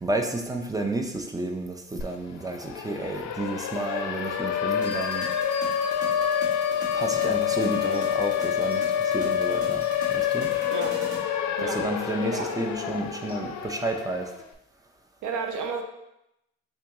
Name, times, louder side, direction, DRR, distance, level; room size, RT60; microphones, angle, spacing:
voice 1, 0.0-5.3 6.9-10.5 11.6-14.3, right 2 dB, 10° right, 3 dB, 0.5 m, -31 dB
Siren, 2.0-2.1 2.4-14.4, left 9 dB, 70° left, 0.5 m, -27 dB
sound 1, 4.8-7.1 7.9-8.0 8.7-9.9 13.3-13.4, left 2 dB, 20° left, 1.0 m, -45 dB
sound 2, 4.8-11.3, right 2 dB, 50° right, 1.2 m, -41 dB
voice 2, 15.2-15.8, right 5 dB, 70° right, 4 dB, 0.6 m, -31 dB
3.6 x 2.9 x 3.5 m, 0.87 s
cardioid pair, 90°, 30 cm